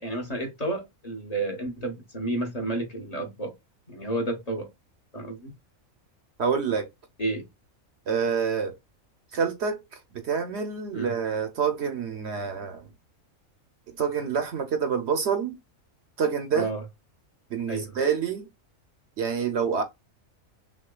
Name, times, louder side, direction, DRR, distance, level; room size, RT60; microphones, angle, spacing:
voice 1, 0.0-3.5 3.9-4.7 5.1-5.5 7.2-7.4 10.9-11.1 16.5-16.8 17.7-17.9, right 2 dB, 30° left, 1.1 m, -31 dB
voice 2, 6.4-6.9 8.1-8.8 9.3-9.8 10.1-12.9 13.9-15.6 16.2-16.7 17.5-18.5 19.2-19.8, right 6 dB, 60° right, 0.9 m, -27 dB
6.1 x 2.2 x 2.3 m
omnidirectional pair, 1.4 m